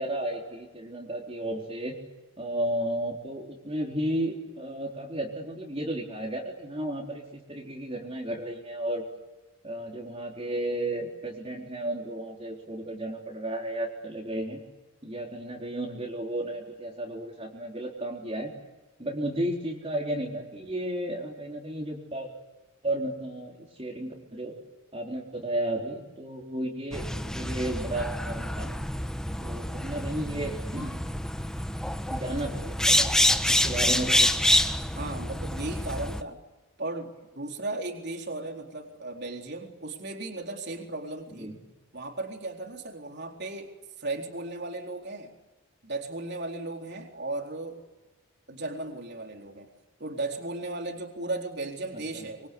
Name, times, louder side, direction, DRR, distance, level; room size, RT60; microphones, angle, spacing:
voice 1, 0.0-1.9 2.4-9.0 9.6-14.6 15.0-18.5 19.0-22.3 22.8-24.5 24.9-28.8 29.4-31.0 32.1-33.1 33.5-34.3 41.4-41.6 52.1-52.3, right 1 dB, 25° right, -1 dB, 4.0 m, -33 dB
sound 1, 26.9-36.2, left 1 dB, 5° left, 1.1 m, -27 dB
voice 2, 35.0-36.4 36.8-41.5 41.9-45.3 45.8-47.8 48.5-49.7 50.0-52.5, right 2 dB, 50° right, 2 dB, 4.1 m, -36 dB
26.0 x 24.5 x 8.4 m, 1.1 s
head